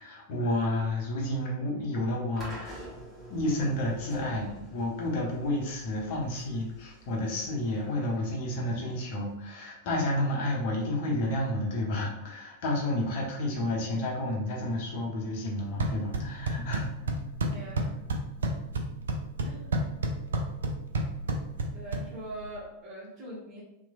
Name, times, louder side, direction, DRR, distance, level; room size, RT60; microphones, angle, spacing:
voice 1, 0.0-2.8 3.3-16.9, left 1 dB, 50° left, -2 dB, 0.7 m, -30 dB
sound 1, 2.4-9.4, right 1 dB, 5° right, 1.1 m, -48 dB
sound 2, 15.6-22.6, right 2 dB, 65° right, 0.3 m, -32 dB
voice 2, 17.5-17.9 19.4-20.0 21.7-23.6, right 1 dB, 30° right, -7 dB, 0.9 m, -42 dB
2.9 x 2.1 x 2.3 m, 0.88 s
figure-of-eight pair, 90°, 0 cm